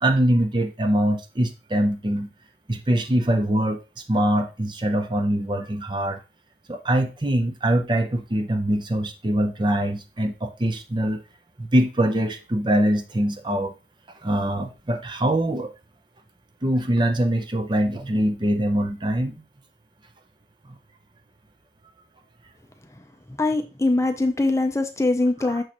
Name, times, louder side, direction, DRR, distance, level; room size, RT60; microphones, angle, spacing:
voice 1, 0.0-2.3 2.7-3.8 4.1-6.2 6.7-11.2 11.6-13.7 14.2-15.7 16.6-19.4, right 1 dB, 25° right, 0.6 m, -23 dB
voice 2, 23.0-25.6, left 2 dB, 15° left, 0.5 m, -23 dB
6.3 x 6.3 x 3.0 m
head